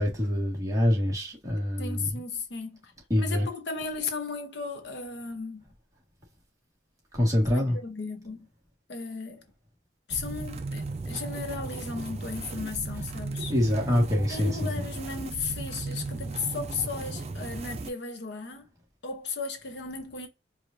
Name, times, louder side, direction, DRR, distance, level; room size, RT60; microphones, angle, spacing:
voice 1, 0.0-2.1 3.1-3.4 7.1-7.8 13.5-14.8, left 1 dB, 20° right, 1.6 m, -25 dB
voice 2, 1.8-2.9 3.2-5.7 7.5-8.5 8.9-9.4 10.1-13.5 14.3-18.6 19.0-20.3, left 4 dB, 65° left, 0.8 m, -35 dB
sound 1, 10.1-17.9, right 3 dB, 35° right, 0.5 m, -36 dB
4.8 x 2.5 x 2.5 m
head